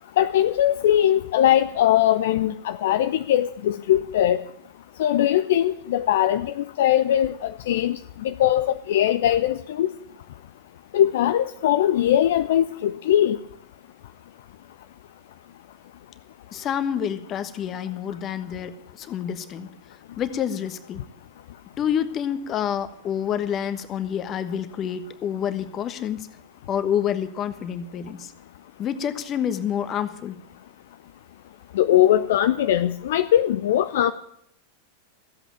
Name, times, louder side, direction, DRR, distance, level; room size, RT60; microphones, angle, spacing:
voice 1, 0.2-4.4 5.0-9.9 10.9-13.4 31.7-34.1, left 11 dB, 55° left, 11 dB, 0.5 m, -21 dB
voice 2, 16.5-19.7 20.2-21.0 21.8-26.3 26.7-28.3 28.8-30.4, left 9 dB, 30° left, 11 dB, 1.2 m, -28 dB
14.5 x 8.0 x 9.0 m, 0.74 s
figure-of-eight pair, 90°, 0 cm